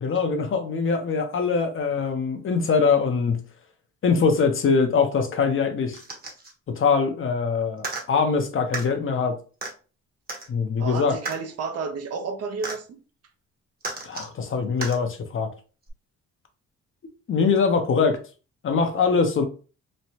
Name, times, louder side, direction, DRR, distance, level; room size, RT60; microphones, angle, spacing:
voice 1, 0.0-3.4 4.0-6.0 6.7-9.4 10.5-11.2 14.0-15.5 17.3-18.2 18.6-19.4, left 5 dB, 45° left, 0.6 m, -23 dB
sound 1, 5.9-6.5 7.8-8.0 8.7-8.9 9.6-9.7 10.3-10.5 11.2-11.4 12.6-12.8 13.8-14.3 14.8-15.0 15.9-16.0, right 3 dB, 30° right, 1.0 m, -33 dB
voice 2, 10.8-13.0, right 5 dB, 55° right, 0.6 m, -31 dB
3.1 x 2.1 x 2.8 m
cardioid pair, 90°, 30 cm